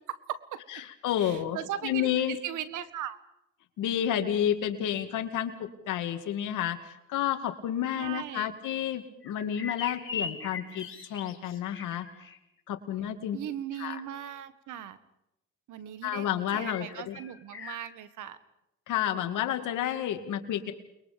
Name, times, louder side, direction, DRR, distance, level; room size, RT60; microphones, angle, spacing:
voice 1, 0.1-0.8 1.2-3.2 8.0-8.5 13.3-15.0 15.7-16.3 16.5-18.4, right 10 dB, 85° right, 13 dB, 1.7 m, -38 dB
voice 2, 0.8-1.6 1.8-2.4 3.8-12.1 12.7-13.4 13.8-14.0 16.0-17.2 18.9-20.7, left 10 dB, 85° left, 7 dB, 2.4 m, -30 dB
sound 1, 9.2-12.4 16.6-17.8, left 5 dB, 45° left, 3.5 m, -40 dB
29.5 x 22.5 x 5.2 m, 0.84 s
cardioid pair, 90°, 30 cm